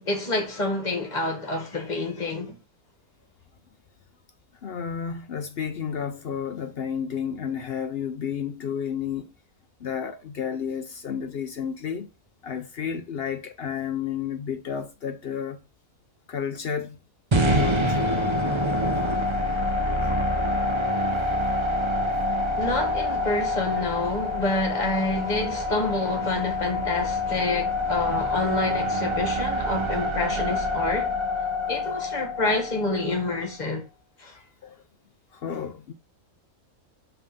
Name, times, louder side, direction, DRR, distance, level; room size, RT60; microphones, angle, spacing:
voice 1, 0.0-2.5 22.6-31.1 31.7-33.8 34.2-34.3, left 2 dB, 30° left, 1.6 m, -28 dB
voice 2, 4.6-9.3 9.8-12.1 12.4-15.6 16.3-17.0 17.5-18.0 20.3-20.4 31.9-32.0 33.1-33.2 34.3-34.8 35.3-35.9, left 7 dB, 55° left, 0.7 m, -31 dB
sound 1, 17.3-33.4, left 1 dB, 35° right, 0.5 m, -26 dB
5.3 x 3.4 x 5.3 m
omnidirectional pair, 1.6 m